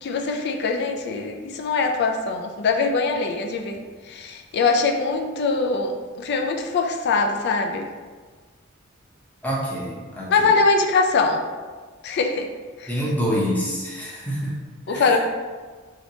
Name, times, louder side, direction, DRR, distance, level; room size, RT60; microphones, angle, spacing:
voice 1, 0.0-7.9 10.3-11.4 12.0-12.5 12.8-12.9 14.9-15.2, left 4 dB, 55° left, 3 dB, 0.4 m, -22 dB
voice 2, 9.4-10.5 12.9-14.5 14.9-15.2, equal, 10° left, -5 dB, 0.7 m, -26 dB
3.1 x 2.8 x 2.7 m, 1.4 s
head